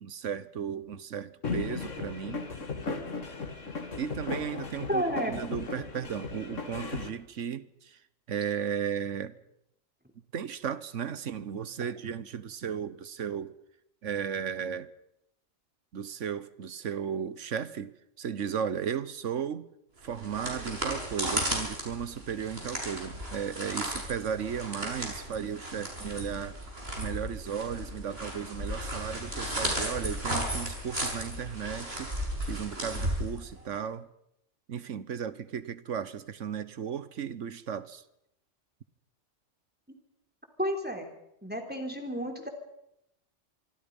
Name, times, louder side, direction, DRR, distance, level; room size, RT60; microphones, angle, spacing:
voice 1, 0.0-2.5 4.0-8.0 8.3-9.4 10.3-13.5 14.0-14.9 15.9-19.7 20.0-26.6 27.0-32.1 32.5-34.1 34.7-38.0, right 8 dB, 75° right, 16 dB, 1.4 m, -35 dB
sound 1, 1.4-7.1, left 4 dB, 80° left, 2.3 m, -36 dB
voice 2, 4.9-5.3 40.6-41.1 41.4-42.5, equal, 10° right, 4 dB, 3.4 m, -31 dB
sound 2, 20.0-33.8, equal, 55° right, 6.7 m, -35 dB
25.5 x 25.0 x 5.4 m, 0.79 s
omnidirectional pair, 1.3 m